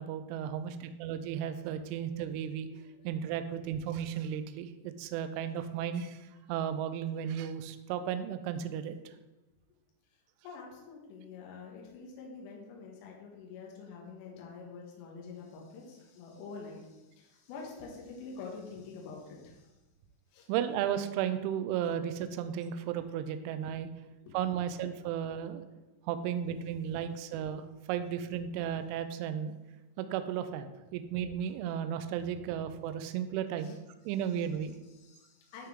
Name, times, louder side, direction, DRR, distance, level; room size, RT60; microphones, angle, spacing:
voice 1, 0.0-2.7 3.0-4.7 5.0-6.2 6.5-9.0 20.5-23.9 24.3-25.6 26.1-29.5 30.0-33.8 34.1-34.8, right 9 dB, 85° right, 10 dB, 2.9 m, -34 dB
voice 2, 10.4-19.7 20.3-20.5 21.9-22.0 22.7-22.8 24.2-24.7 26.4-26.5 33.6-33.7 34.9-35.7, left 4 dB, 70° left, -1 dB, 3.1 m, -47 dB
12.5 x 4.5 x 3.7 m, 1.1 s
omnidirectional pair, 5.8 m